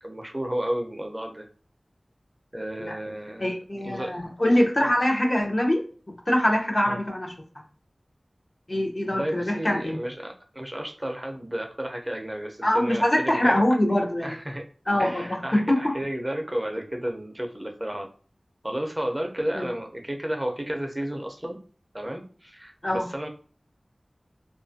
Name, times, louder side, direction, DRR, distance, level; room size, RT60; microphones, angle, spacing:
voice 1, 0.0-1.5 2.5-3.5 3.8-4.2 4.8-4.9 6.9-7.0 9.1-13.6 14.2-14.7 15.0-18.1 18.6-21.6 21.9-23.3, right 1 dB, 20° right, 3 dB, 0.5 m, -32 dB
voice 2, 3.4-5.8 6.3-7.3 8.7-10.0 12.6-14.4 14.9-15.9 19.5-19.7 22.8-23.1, left 1 dB, 50° left, 0 dB, 0.7 m, -23 dB
2.5 x 2.4 x 2.5 m, 0.40 s
wide cardioid pair, 40°, 0 cm